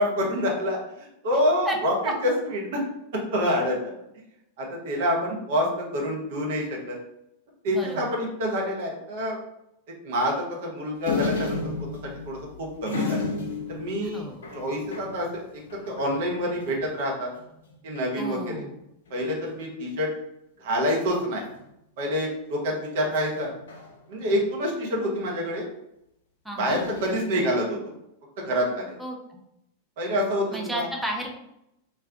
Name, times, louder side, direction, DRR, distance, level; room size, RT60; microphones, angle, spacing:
voice 1, 0.0-2.8 3.3-3.9 4.6-7.0 7.6-9.4 10.0-11.6 12.0-13.3 13.7-14.2 14.5-17.3 17.8-18.6 19.1-20.1 20.6-21.5 22.0-23.5 24.1-25.7 26.5-27.9 28.4-29.0 30.0-30.9, equal, 55° right, -1 dB, 0.8 m, -27 dB
voice 2, 1.6-2.1 7.7-8.0 14.1-14.4 18.2-18.8 26.4-26.8 29.0-29.2 30.5-31.4, right 1 dB, 5° right, 0 dB, 0.6 m, -32 dB
sound 1, 11.0-17.0 17.4-17.5 17.7-18.2 19.1-19.6 21.0-21.5 23.1-24.4 26.7-27.1, left 4 dB, 65° left, 0.6 m, -33 dB
2.6 x 2.2 x 3.4 m, 0.82 s
figure-of-eight pair, 90°, 0 cm